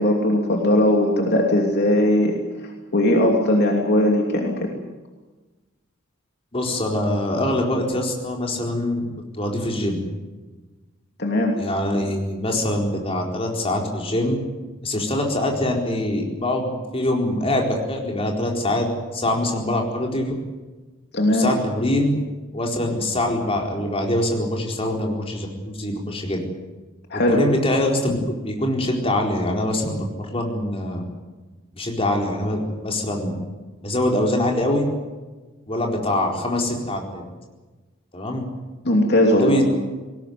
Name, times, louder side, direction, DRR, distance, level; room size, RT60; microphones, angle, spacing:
voice 1, 0.0-2.4 2.9-4.5 11.2-11.6 21.1-21.5 27.1-27.4 38.8-39.6, left 1 dB, 55° left, 1 dB, 2.9 m, -19 dB
voice 2, 6.5-9.0 9.4-10.0 11.6-14.4 14.8-18.9 19.1-20.3 21.3-22.1 22.5-26.4 27.1-28.2 28.4-31.0 31.7-33.3 33.8-34.9 35.7-37.2 38.1-38.4 39.3-39.6, left 1 dB, 30° left, 1 dB, 4.3 m, -24 dB
20.0 x 19.0 x 9.4 m, 1.2 s
head